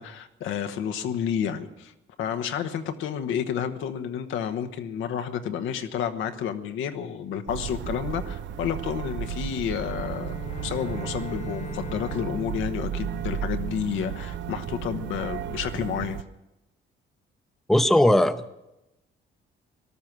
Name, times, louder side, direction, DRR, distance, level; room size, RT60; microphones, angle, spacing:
voice 1, 0.0-1.9 2.2-10.4 10.6-16.2, left 8 dB, 85° left, 8 dB, 1.1 m, -30 dB
sound 1, 7.5-16.2, right 9 dB, 65° right, 0.5 m, -34 dB
Bowed string instrument, 9.7-14.1, left 4 dB, 35° left, 0.8 m, -42 dB
voice 2, 17.7-18.5, left 1 dB, ahead, 11 dB, 0.7 m, -19 dB
18.5 x 12.5 x 6.1 m, 0.94 s
cardioid pair, 90°, 20 cm